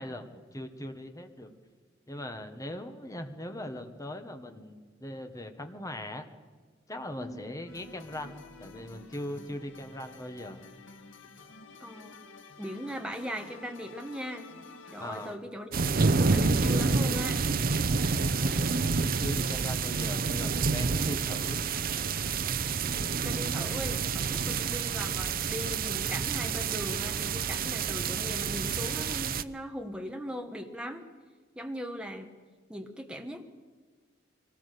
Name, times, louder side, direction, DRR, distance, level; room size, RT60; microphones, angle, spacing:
voice 1, 0.0-1.5 2.1-6.2 6.9-10.7 15.0-15.4 18.4-22.3, left 1 dB, 20° left, 6 dB, 1.4 m, -40 dB
voice 2, 7.2-7.5 11.8-12.2 12.6-14.5 14.9-17.4 18.9-19.1 22.8-31.0 31.5-32.4 32.7-33.4, equal, 5° right, 4 dB, 1.4 m, -39 dB
sound 1, 7.7-15.4, left 3 dB, 80° left, 2.1 m, -50 dB
sound 2, 15.7-29.4, right 4 dB, 50° right, 0.7 m, -28 dB
23.5 x 18.0 x 6.8 m, 1.4 s
head